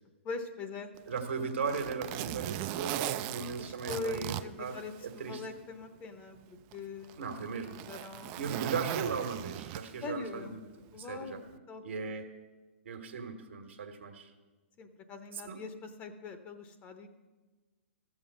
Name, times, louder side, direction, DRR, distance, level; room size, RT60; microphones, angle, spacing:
voice 1, 0.2-0.9 1.4-1.5 3.6-4.9 5.3-8.4 10.0-10.6 10.9-11.8 14.8-17.1, left 4 dB, 25° left, 8 dB, 0.8 m, -42 dB
Zipper (clothing), 1.0-5.4 5.8-5.9 6.7-10.2 11.3-11.5, right 13 dB, 35° right, 0.3 m, -39 dB
voice 2, 1.1-4.8 5.0-5.4 7.2-7.8 8.4-10.5 11.0-11.4 11.8-12.2 12.8-14.3 15.3-15.6, right 5 dB, 70° right, 6 dB, 1.4 m, -37 dB
14.0 x 7.1 x 5.4 m, 1.3 s
figure-of-eight pair, 120°, 7 cm